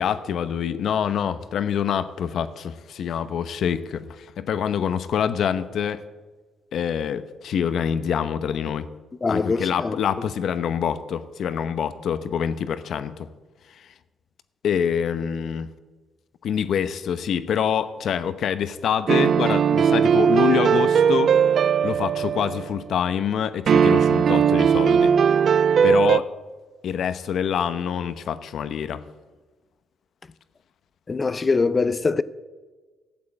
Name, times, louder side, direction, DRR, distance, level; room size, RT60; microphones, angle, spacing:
voice 1, 0.0-6.0 6.7-8.9 9.3-13.3 14.6-15.7 16.4-21.3 21.8-25.1 25.8-26.3 26.8-29.0, left 8 dB, 65° left, 0.9 m, -26 dB
voice 2, 9.2-9.9 31.1-32.2, left 4 dB, 30° left, 0.6 m, -23 dB
sound 1, 19.1-22.8 23.7-26.2, right 7 dB, 55° right, 0.4 m, -18 dB
13.0 x 7.5 x 8.6 m
cardioid pair, 90°, 0 cm